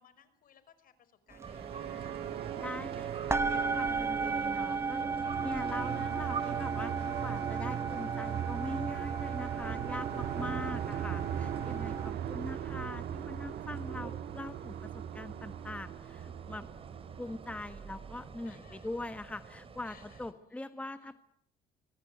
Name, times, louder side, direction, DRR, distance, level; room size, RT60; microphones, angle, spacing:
voice 1, 0.0-2.1 11.7-12.8 18.4-18.9 19.8-21.2, left 8 dB, 55° left, 13 dB, 5.2 m, -63 dB
sound 1, 1.3-18.2, right 10 dB, 70° right, 1.8 m, -39 dB
sound 2, 1.4-1.6 1.8-2.9 3.3-12.1, right 4 dB, 15° right, 1.0 m, -35 dB
sound 3, 1.4-20.3, right 5 dB, 35° right, 3.5 m, -47 dB
voice 2, 2.5-16.7 17.2-21.2, left 2 dB, 10° left, 10 dB, 1.2 m, -42 dB
25.5 x 21.5 x 9.3 m, 0.68 s
cardioid pair, 110°, 17 cm